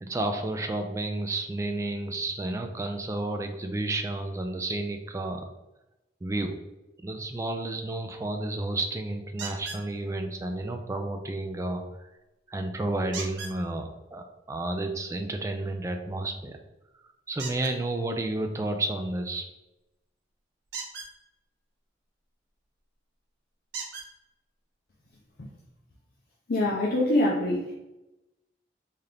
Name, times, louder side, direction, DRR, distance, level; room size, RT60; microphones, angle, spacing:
voice 1, 0.0-5.5 6.2-6.6 7.0-12.0 12.5-16.6 17.3-19.5, right 2 dB, 15° right, 5 dB, 0.3 m, -31 dB
sound 1, 9.4-9.8 13.1-13.6 17.4-17.7 20.6-21.1 22.8-22.9 23.7-24.1 25.1-25.2 25.7-25.8, right 5 dB, 75° right, 0.7 m, -37 dB
voice 2, 26.5-27.7, left 1 dB, 60° left, -3 dB, 0.6 m, -24 dB
3.7 x 2.8 x 3.3 m, 0.97 s
head